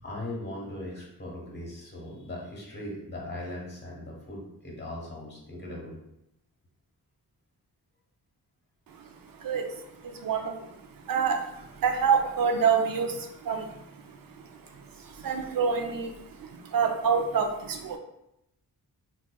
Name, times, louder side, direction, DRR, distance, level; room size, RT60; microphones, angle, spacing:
voice 1, 0.0-6.0, left 1 dB, 25° left, -3 dB, 1.0 m, -39 dB
voice 2, 9.4-9.7 10.0-10.7 11.0-13.7 14.0-18.0, right 6 dB, 60° right, 5 dB, 0.5 m, -28 dB
4.7 x 2.4 x 2.2 m, 0.84 s
wide cardioid pair, 140°, 39 cm